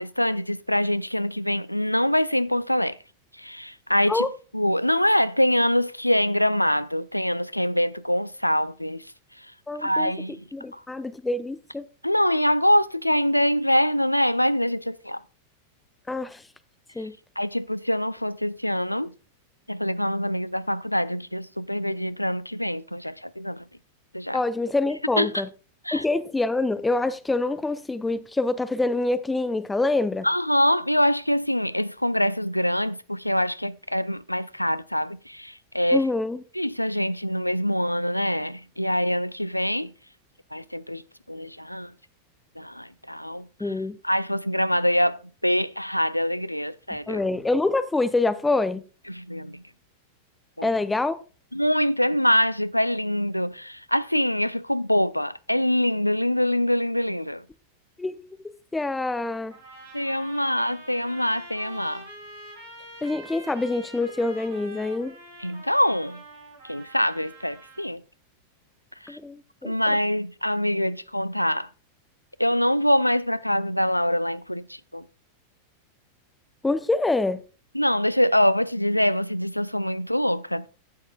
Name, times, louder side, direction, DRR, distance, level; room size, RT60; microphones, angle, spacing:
voice 1, 0.0-3.0 3.4-4.3 4.5-9.0 9.8-10.4 10.7-10.8 12.0-15.2 17.4-19.1 19.7-23.6 24.1-24.4 25.2-25.4 25.9-26.0 30.2-36.0 36.6-39.9 40.5-41.0 41.3-41.9 42.6-43.5 44.0-47.2 49.1-49.6 50.6-50.7 51.5-57.4 59.9-62.0 65.4-66.2 66.7-68.0 69.0-69.2 69.6-71.7 72.4-75.0 77.7-80.7, equal, 90° left, 0.3 m, -24 dB
voice 2, 9.7-10.1 10.5-11.8 16.1-16.4 17.0-17.2 24.3-25.5 25.9-30.3 35.9-36.4 43.6-44.0 47.1-48.8 50.6-51.2 58.0-58.2 58.7-59.5 63.0-65.2 69.1-69.9 76.6-77.4, left 2 dB, 10° left, 0.7 m, -26 dB
sound 1, 59.5-67.9, right 1 dB, 70° right, 3.6 m, -45 dB
15.0 x 6.3 x 2.3 m
figure-of-eight pair, 90°, 0 cm